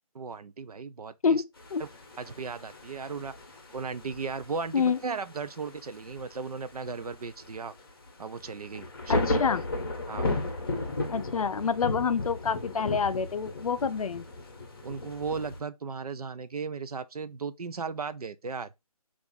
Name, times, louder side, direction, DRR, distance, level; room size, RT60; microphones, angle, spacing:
voice 1, 0.1-1.4 1.8-1.9 2.2-3.3 3.7-7.7 8.2-9.6 10.1-10.4 14.8-18.7, right 5 dB, 70° right, 0.5 m, -36 dB
sound 1, 1.6-15.6, left 2 dB, 35° left, 0.7 m, -35 dB
voice 2, 9.1-9.6 11.1-14.3, left 6 dB, 65° left, 0.4 m, -27 dB
3.4 x 2.4 x 3.8 m
figure-of-eight pair, 170°, 20 cm